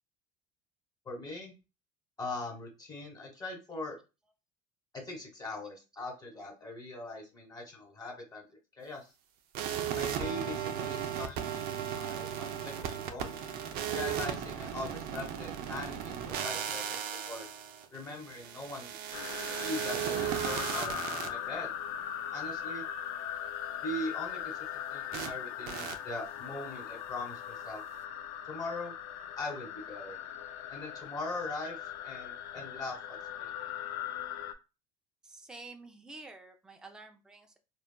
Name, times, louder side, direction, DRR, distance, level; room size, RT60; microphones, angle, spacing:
voice 1, 1.0-1.5 2.2-4.0 4.9-8.5 8.8-9.1 9.9-13.4 13.9-17.5 17.9-18.9 19.6-21.7 22.3-22.8 23.8-27.8 28.5-28.9 29.4-30.2 30.7-33.5, left 2 dB, 20° left, 1 dB, 1.4 m, -41 dB
voice 2, 5.6-6.1 35.2-37.6, right 2 dB, 5° right, 3 dB, 0.4 m, -50 dB
sound 1, 9.5-21.3 25.1-25.3 25.7-25.9, right 9 dB, 60° right, 0.5 m, -36 dB
sound 2, 19.1-34.5, left 10 dB, 80° left, 0.4 m, -40 dB
3.4 x 2.3 x 2.2 m, 0.28 s
supercardioid pair, 105°, 17 cm